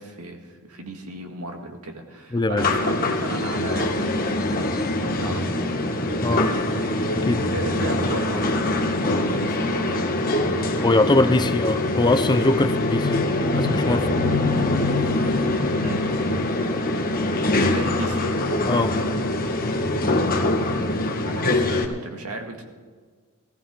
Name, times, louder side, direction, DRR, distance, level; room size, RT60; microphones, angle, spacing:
voice 1, 0.0-4.6 5.0-6.6 7.5-8.6 9.0-10.1 15.8-16.0 17.7-18.3 20.6-20.9 21.2-22.6, right 2 dB, 85° right, 3 dB, 1.9 m, -35 dB
voice 2, 2.3-2.7 6.2-6.5 7.2-7.4 10.8-13.3 13.5-14.2 18.6-18.9, left 2 dB, 20° left, 11 dB, 0.5 m, -22 dB
sound 1, 2.6-21.8, left 2 dB, 40° left, 1.3 m, -23 dB
17.0 x 15.0 x 3.8 m, 1.5 s
head